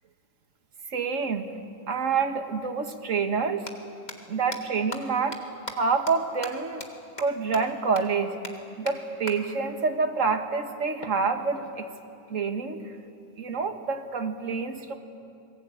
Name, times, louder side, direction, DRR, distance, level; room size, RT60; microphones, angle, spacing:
voice 1, 0.9-1.5 1.9-3.6 4.3-5.4 5.7-6.8 7.2-11.9 12.3-12.8 13.4-14.9, right 5 dB, 45° right, 6 dB, 1.8 m, -27 dB
sound 1, 3.6-3.7 4.1-4.2 4.5-4.6 4.9-5.0 5.3-5.4 5.7-5.8 6.1-6.2 6.4-6.5 6.8-6.9 7.2-7.3 7.5-7.6 7.9-8.0 8.4-8.5 8.9-9.0 9.3-9.4 11.0-12.0, left 2 dB, 25° left, 1.8 m, -38 dB
28.0 x 20.5 x 8.7 m, 2.6 s
omnidirectional pair, 2.0 m